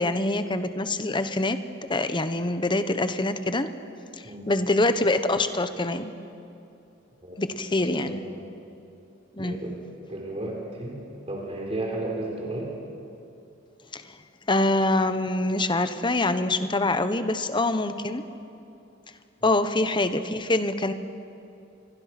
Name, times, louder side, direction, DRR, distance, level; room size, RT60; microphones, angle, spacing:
voice 1, 0.0-1.6 1.9-3.7 4.5-6.1 7.4-8.2 9.4-9.6 13.9-14.0 14.5-18.2 19.4-20.9, left 2 dB, 25° left, 10 dB, 1.1 m, -25 dB
voice 2, 7.8-8.8 9.4-9.8 10.1-11.0 11.3-12.8 19.4-19.6, right 2 dB, 30° right, -1 dB, 3.9 m, -34 dB
29.0 x 23.0 x 6.0 m, 2.7 s
head